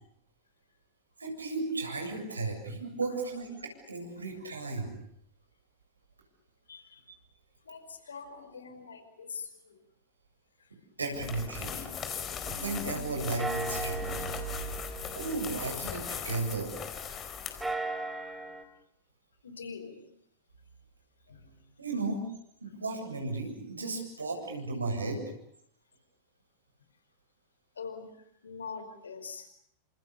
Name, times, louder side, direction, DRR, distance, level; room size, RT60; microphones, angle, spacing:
voice 1, 1.2-4.9 11.0-11.9 12.4-14.3 15.1-16.8 21.8-22.2 22.6-25.2, right 3 dB, 75° right, 2 dB, 7.6 m, -34 dB
voice 2, 6.7-7.0 7.7-9.5 19.4-20.0 21.3-21.6 27.8-28.1 28.4-29.4, left 5 dB, 70° left, 9 dB, 5.0 m, -43 dB
sound 1, 11.1-17.7, left 7 dB, 25° left, 4.4 m, -39 dB
sound 2, 11.2-13.0 13.4-16.9 17.4-18.6, right 2 dB, 5° right, 3.7 m, -39 dB
29.5 x 27.0 x 7.0 m, 0.71 s
figure-of-eight pair, 90°, 0 cm